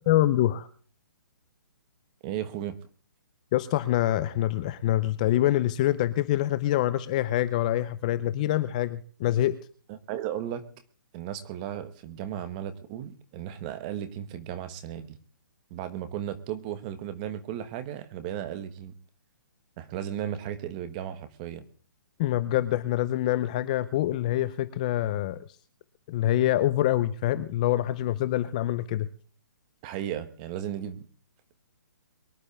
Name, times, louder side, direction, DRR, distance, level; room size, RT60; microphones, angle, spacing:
voice 1, 0.1-0.7 3.5-9.6 22.2-25.4 26.1-29.1, left 13 dB, 20° left, 14 dB, 0.6 m, -25 dB
voice 2, 2.2-2.8 9.9-10.6 11.1-15.2 15.7-18.9 19.8-21.6 29.8-31.1, right 10 dB, 20° right, 11 dB, 1.3 m, -35 dB
23.5 x 11.0 x 3.3 m, 0.43 s
hypercardioid pair, 170°, 11 cm